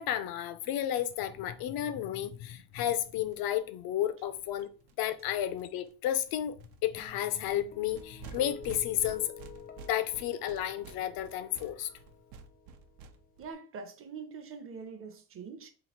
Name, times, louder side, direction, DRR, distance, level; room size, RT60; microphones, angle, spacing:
voice 1, 0.0-4.7 5.0-9.3 9.9-11.9, left 11 dB, 70° left, 0.6 m, -32 dB
sound 1, 1.1-1.2 1.4-1.5 1.7-1.8 2.0-5.2 5.6-5.9 6.2-13.5, right 6 dB, 80° right, 0.6 m, -51 dB
Guitar, 7.0-13.5, left 6 dB, 25° left, 0.4 m, -50 dB
voice 2, 13.4-15.7, right 5 dB, 35° right, 0.6 m, -44 dB
3.1 x 2.4 x 4.1 m
cardioid pair, 125°, 37 cm